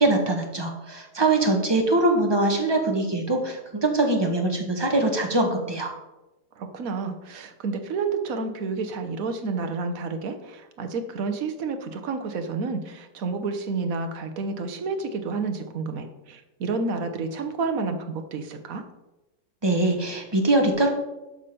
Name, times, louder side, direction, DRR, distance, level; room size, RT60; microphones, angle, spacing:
voice 1, 0.0-5.9 19.6-20.9, right 2 dB, 15° right, 2 dB, 1.3 m, -22 dB
voice 2, 6.5-18.8, right 4 dB, 55° right, 7 dB, 1.4 m, -30 dB
8.8 x 5.5 x 6.9 m, 1.0 s
omnidirectional pair, 1.9 m